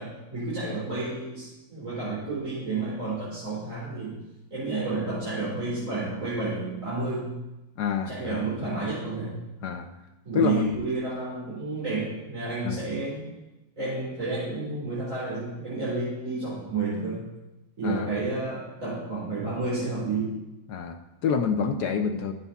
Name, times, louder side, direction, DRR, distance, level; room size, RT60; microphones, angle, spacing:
voice 1, 0.0-4.2 4.5-7.3 8.1-9.3 10.2-13.2 13.8-17.2 17.8-20.3, right 3 dB, 40° right, -10 dB, 4.1 m, -31 dB
voice 2, 7.8-8.4 9.6-9.9 10.3-10.7 12.6-12.8 17.8-18.1 20.7-22.3, left 6 dB, 65° left, 7 dB, 1.2 m, -27 dB
13.5 x 8.2 x 4.1 m, 0.99 s
omnidirectional pair, 2.1 m